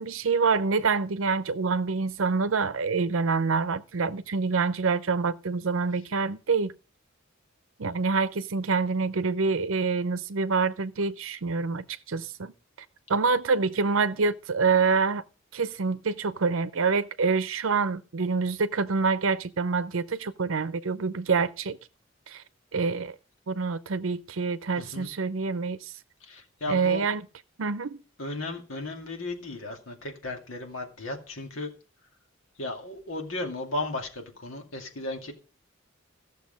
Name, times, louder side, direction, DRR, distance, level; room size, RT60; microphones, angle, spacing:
voice 1, 0.0-6.7 7.8-12.5 13.1-15.2 15.5-21.8 22.3-22.4 22.7-23.1 23.5-25.9 26.7-27.2 27.6-28.0, right 4 dB, 80° right, 0.7 m, -26 dB
voice 2, 24.8-25.1 26.2-27.0 28.2-31.7 32.6-35.3, left 2 dB, 80° left, 2.4 m, -35 dB
14.5 x 6.8 x 5.2 m
head